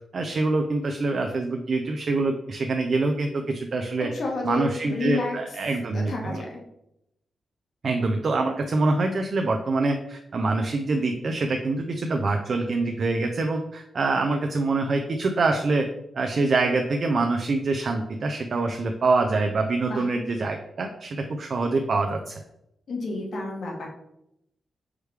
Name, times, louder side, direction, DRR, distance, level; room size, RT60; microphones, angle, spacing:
voice 1, 0.1-4.1 4.4-6.4 7.8-15.9 16.2-22.4, right 3 dB, 55° right, 4 dB, 0.4 m, -25 dB
voice 2, 4.0-5.3 5.9-6.6 19.8-20.0 22.9-23.9, left 3 dB, 65° left, 0 dB, 1.2 m, -30 dB
4.7 x 3.2 x 3.3 m, 0.82 s
cardioid pair, 105°, 0 cm